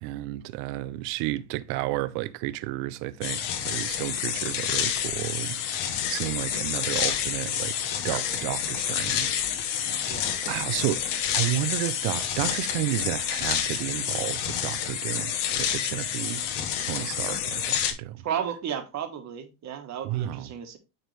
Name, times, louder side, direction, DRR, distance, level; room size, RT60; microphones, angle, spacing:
voice 1, 0.0-7.7 8.0-9.5 10.4-16.4 16.8-18.2 20.0-20.5, right 15 dB, 65° right, 0.7 m, -32 dB
sound 1, 3.2-17.9, left 9 dB, 60° left, 1.4 m, -29 dB
voice 2, 10.0-10.4 18.2-20.8, right 9 dB, 35° right, 1.4 m, -33 dB
9.3 x 3.6 x 3.2 m
cardioid pair, 140°, 47 cm